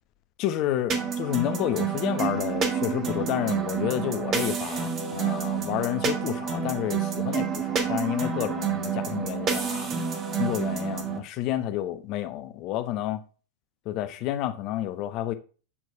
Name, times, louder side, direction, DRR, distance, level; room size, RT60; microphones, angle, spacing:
voice 1, 0.4-10.0 10.4-13.2 13.8-15.3, left 13 dB, 45° left, 1.1 m, -30 dB
sound 1, 0.9-11.2, right 7 dB, 30° right, 1.6 m, -29 dB
8.7 x 4.6 x 5.8 m
figure-of-eight pair, 90°, 0 cm